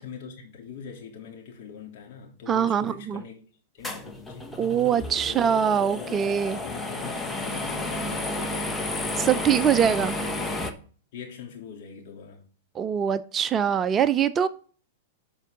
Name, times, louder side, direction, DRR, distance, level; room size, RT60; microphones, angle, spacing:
voice 1, 0.0-3.4 3.7-4.5 5.3-6.3 6.6-10.7 11.1-12.4, left 6 dB, 55° left, 3.3 m, -42 dB
voice 2, 2.5-3.2 4.6-6.6 9.2-10.2 12.7-14.5, right 8 dB, 25° right, 0.5 m, -23 dB
sound 1, 3.8-10.7, left 2 dB, 10° left, 1.2 m, -32 dB
Brass instrument, 4.5-8.8, left 5 dB, 30° left, 1.4 m, -46 dB
11.5 x 5.4 x 3.8 m
hypercardioid pair, 110°, 0 cm